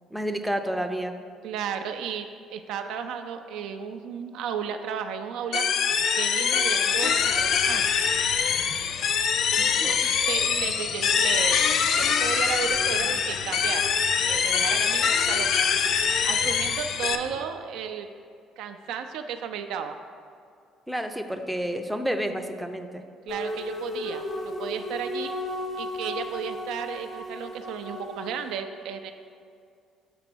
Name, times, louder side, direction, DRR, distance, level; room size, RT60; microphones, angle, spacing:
voice 1, 0.1-1.2 9.6-10.1 20.9-23.0, equal, 5° right, 6 dB, 0.5 m, -30 dB
voice 2, 1.4-5.6 6.2-8.1 9.8-11.7 12.0-15.5 16.2-18.1 18.6-20.0 23.3-25.3 25.8-29.1, right 7 dB, 75° right, 6 dB, 0.4 m, -34 dB
sound 1, 5.5-17.2, left 7 dB, 60° left, 0.4 m, -24 dB
sound 2, 7.0-17.4, left 2 dB, 90° left, 0.7 m, -45 dB
sound 3, 23.3-28.5, left 1 dB, 40° left, 1.1 m, -34 dB
6.9 x 3.3 x 6.1 m, 2.4 s
hypercardioid pair, 65°, 0 cm